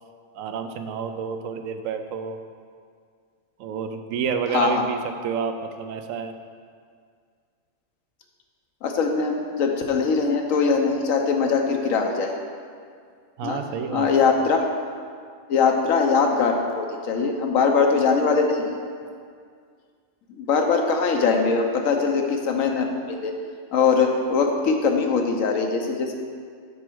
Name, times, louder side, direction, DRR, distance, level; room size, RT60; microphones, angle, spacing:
voice 1, 0.4-2.4 3.6-6.3 13.4-14.1, right 6 dB, 80° right, 7 dB, 1.0 m, -29 dB
voice 2, 4.5-4.8 8.8-12.3 13.4-13.6 13.9-14.6 15.5-18.6 20.3-23.3 23.7-26.1, left 5 dB, 85° left, 3 dB, 1.2 m, -21 dB
6.9 x 4.4 x 6.1 m, 2.1 s
omnidirectional pair, 1.4 m